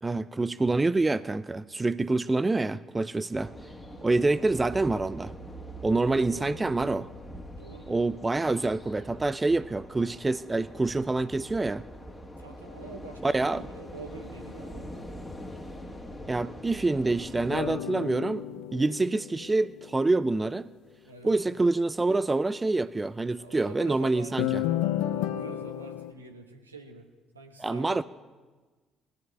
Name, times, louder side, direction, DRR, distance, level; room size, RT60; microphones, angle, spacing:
voice 1, 0.0-3.5 4.0-5.3 5.8-7.0 7.9-11.8 13.2-13.6 16.3-20.7 21.2-24.6 27.6-28.0, right 2 dB, 20° right, 17 dB, 0.4 m, -26 dB
sound 1, 3.3-17.6, equal, 15° left, 1.8 m, -43 dB
voice 2, 6.0-6.8 7.5-8.1 12.4-14.9 21.0-21.3 23.3-27.1 27.3-28.0, right 3 dB, 85° right, 4 dB, 1.1 m, -46 dB
sound 2, 17.5-20.1 24.4-26.1, left 12 dB, 65° left, 0.6 m, -32 dB
20.0 x 13.0 x 3.4 m, 1.3 s
figure-of-eight pair, 45°, 0 cm